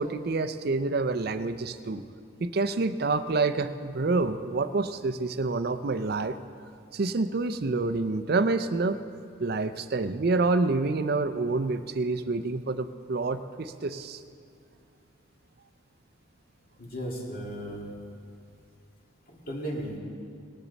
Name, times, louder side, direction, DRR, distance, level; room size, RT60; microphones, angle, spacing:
voice 1, 0.0-2.0 2.4-6.4 6.9-9.0 9.4-14.2, right 3 dB, 50° right, 11 dB, 0.5 m, -27 dB
voice 2, 16.8-17.8 19.3-20.0, equal, 45° left, -2 dB, 2.2 m, -35 dB
19.0 x 10.0 x 4.1 m, 2.4 s
head